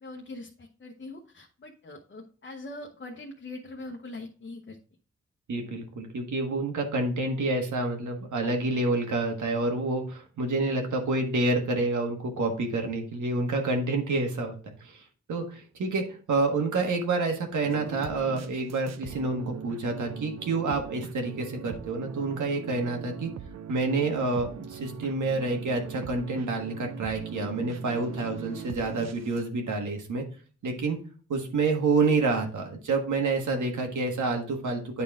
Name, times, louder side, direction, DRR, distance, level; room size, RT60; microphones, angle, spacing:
voice 1, 0.0-4.8, left 2 dB, 40° left, 0 dB, 0.9 m, -42 dB
voice 2, 5.5-15.0 15.3-23.3 23.7-30.2 30.6-31.0 31.3-35.0, right 3 dB, 85° right, 3 dB, 1.5 m, -28 dB
sound 1, 17.6-29.4, right 8 dB, 65° right, 0.6 m, -41 dB
9.5 x 4.2 x 3.6 m, 0.40 s
wide cardioid pair, 120°, 29 cm